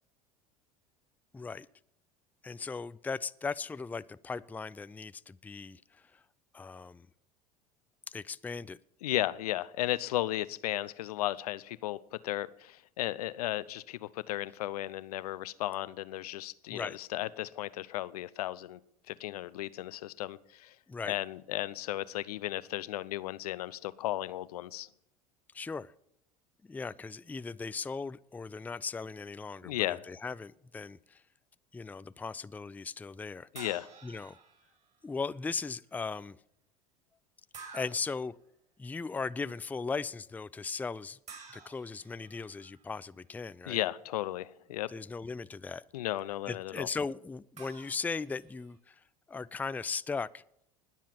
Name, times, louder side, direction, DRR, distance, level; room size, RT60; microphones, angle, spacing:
voice 1, 1.3-1.7 2.4-6.2 6.5-7.1 8.1-8.8 16.7-17.0 20.9-21.1 25.5-25.9 26.7-29.7 30.1-31.2 31.7-33.5 34.0-34.4 35.0-36.4 37.7-38.4 38.8-41.2 41.5-43.8 44.9-45.8 46.5-49.0 49.3-50.4, left 4 dB, 10° left, 0.4 m, -38 dB
voice 2, 9.0-12.0 12.2-18.8 19.1-20.7 21.1-24.9 29.6-30.0 33.5-33.9 43.7-44.9 45.9-46.9, left 15 dB, 75° left, 0.6 m, -35 dB
sound 1, 33.5-34.9 37.5-38.3 41.3-42.8 47.6-48.8, right 5 dB, 35° right, 5.6 m, -51 dB
20.5 x 7.4 x 5.8 m
hypercardioid pair, 75°, 20 cm